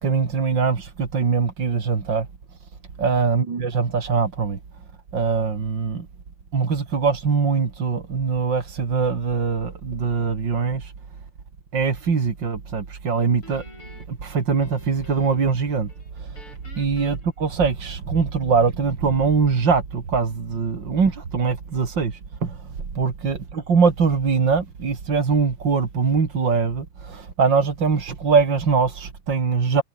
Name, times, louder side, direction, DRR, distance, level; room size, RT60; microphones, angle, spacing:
voice 1, 0.0-2.3 3.0-4.6 5.1-6.1 6.5-10.9 11.7-13.6 14.1-15.9 16.2-16.4 16.8-22.7 22.9-29.8, right 5 dB, 35° right, 2.8 m, -22 dB
Guitar, 13.4-15.6 15.9-18.2, left 2 dB, 35° left, 8.8 m, -49 dB
omnidirectional pair, 4.4 m